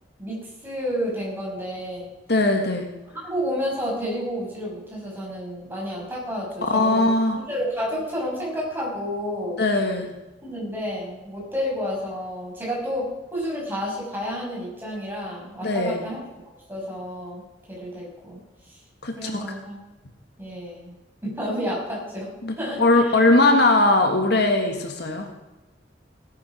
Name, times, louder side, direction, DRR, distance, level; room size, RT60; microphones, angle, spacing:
voice 1, 0.2-2.1 3.1-7.0 7.4-9.6 10.4-16.2 16.7-17.4 17.7-18.4 18.7-18.8 19.2-19.8 20.4-20.9 21.2-23.1, equal, 10° right, -5 dB, 6.2 m, -30 dB
voice 2, 2.3-2.9 6.7-7.4 9.6-10.1 15.6-16.0 19.0-19.4 22.4-25.4, left 2 dB, 65° left, 4 dB, 1.8 m, -20 dB
17.0 x 9.5 x 6.2 m, 1.0 s
head